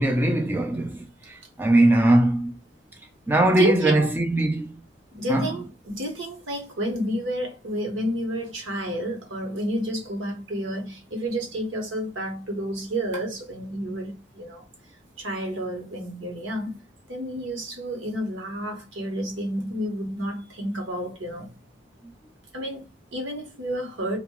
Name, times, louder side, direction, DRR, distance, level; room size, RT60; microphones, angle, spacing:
voice 1, 0.0-2.5 3.3-4.7 5.3-5.5, right 1 dB, 10° right, 0.4 m, -21 dB
voice 2, 3.6-4.1 5.1-14.6 15.2-16.8 17.1-21.5 22.5-24.2, right 1 dB, 90° right, 1.2 m, -30 dB
2.4 x 2.3 x 3.1 m
head